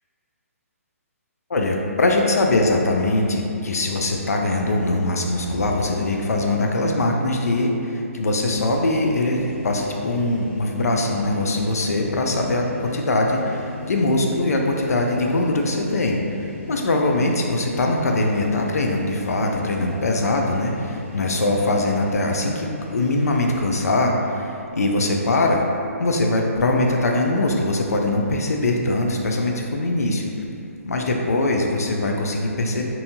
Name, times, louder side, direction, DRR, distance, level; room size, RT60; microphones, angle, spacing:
voice 1, 1.5-16.2 16.7-25.6 26.0-30.3 30.9-32.9, left 2 dB, 90° left, 1 dB, 0.4 m, -22 dB
sound 1, 4.6-6.8 7.2-7.3 8.5-23.8, left 3 dB, 35° right, 1.0 m, -39 dB
2.7 x 2.2 x 2.6 m, 2.6 s
hypercardioid pair, 155°, 8 cm